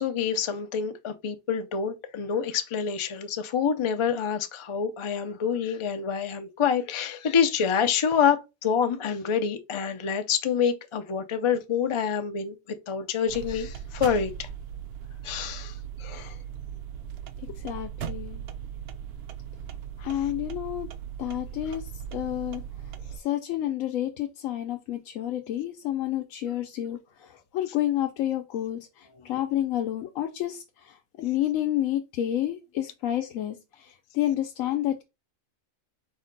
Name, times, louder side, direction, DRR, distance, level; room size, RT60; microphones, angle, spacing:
voice 1, 0.0-12.6 12.9-14.5 15.2-15.7 16.0-16.4 20.0-20.2 29.1-29.3, left 7 dB, 55° left, 0.3 m, -27 dB
sound 1, 13.3-23.2, right 9 dB, 60° right, 0.7 m, -38 dB
voice 2, 17.4-18.4 20.0-20.9 21.2-21.8 22.1-22.6 23.2-35.0, left 12 dB, 80° left, 1.0 m, -30 dB
4.8 x 2.2 x 3.8 m
omnidirectional pair, 1.4 m